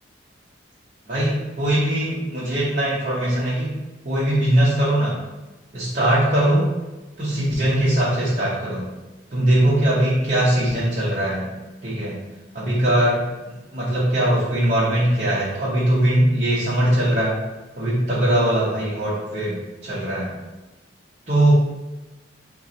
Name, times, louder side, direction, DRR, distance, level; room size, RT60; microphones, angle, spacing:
voice 1, 1.1-3.7 4.0-5.2 5.7-6.7 7.2-8.9 9.3-11.5 11.8-12.2 12.5-13.2 13.7-17.4 17.8-20.3 21.3-21.5, right 1 dB, 40° right, -8 dB, 0.9 m, -20 dB
4.5 x 2.2 x 3.8 m, 1.1 s
head